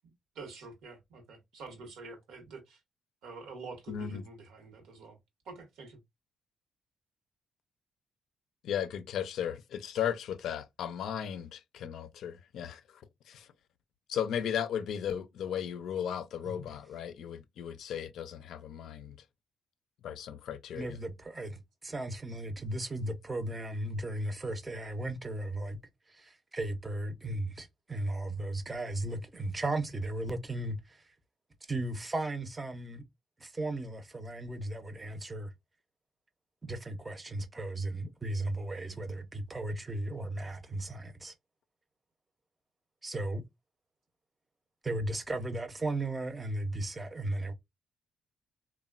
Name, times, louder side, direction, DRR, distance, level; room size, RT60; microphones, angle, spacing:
voice 1, 0.3-2.8 3.2-5.2 5.4-6.0, right 3 dB, 85° right, 0.9 m, -47 dB
voice 2, 3.9-4.2 8.6-12.8 13.3-13.5 14.1-19.2 20.0-21.0 38.9-39.0, left 9 dB, 75° left, 0.4 m, -36 dB
voice 3, 20.7-25.8 26.1-31.1 31.6-33.0 33.4-35.5 36.6-41.3 43.0-43.4 44.8-47.5, right 2 dB, 20° right, 0.6 m, -36 dB
3.1 x 2.1 x 2.3 m
cardioid pair, 90°, 0 cm